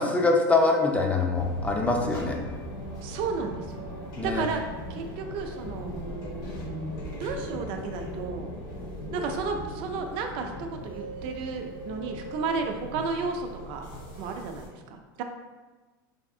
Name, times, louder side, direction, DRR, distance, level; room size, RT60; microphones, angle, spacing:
voice 1, 0.0-2.4 4.2-4.4, left 3 dB, 10° left, 1 dB, 0.4 m, -24 dB
sound 1, 1.3-14.7, equal, 65° left, 1.3 m, -38 dB
voice 2, 3.0-3.9 4.2-4.6 4.9-5.9 7.2-8.5 9.1-13.9 14.2-15.2, right 4 dB, 55° right, 4 dB, 0.4 m, -33 dB
3.4 x 2.5 x 2.3 m, 1.2 s
hypercardioid pair, 105°, 11 cm